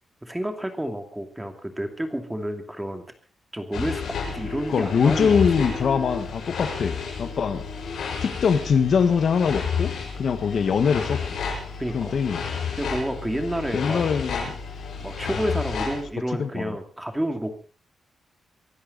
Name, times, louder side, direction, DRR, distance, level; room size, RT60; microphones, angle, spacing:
voice 1, 0.2-3.0 3.5-5.8 11.8-12.2 12.8-14.0 15.0-17.5, right 1 dB, 5° right, 6 dB, 2.5 m, -30 dB
sound 1, 3.7-16.0, left 6 dB, 85° left, 6.8 m, -31 dB
voice 2, 4.7-7.6 8.2-11.2 11.9-12.4 13.7-14.5 16.4-16.7, left 6 dB, 55° left, 10 dB, 1.4 m, -23 dB
24.0 x 12.5 x 4.0 m, 0.36 s
wide cardioid pair, 155°, 0 cm